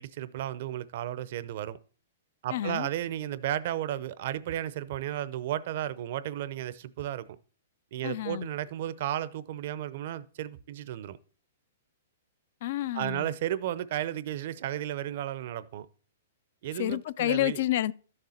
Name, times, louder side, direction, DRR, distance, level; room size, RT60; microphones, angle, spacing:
voice 1, 0.0-1.8 2.4-7.3 7.9-11.2 12.9-15.9 16.6-17.6, right 12 dB, 55° right, 0.7 m, -33 dB
voice 2, 2.5-2.9 8.0-8.5 12.6-13.3 16.7-17.9, left 14 dB, 55° left, 0.4 m, -29 dB
12.5 x 6.7 x 4.3 m
hypercardioid pair, 145°, 0 cm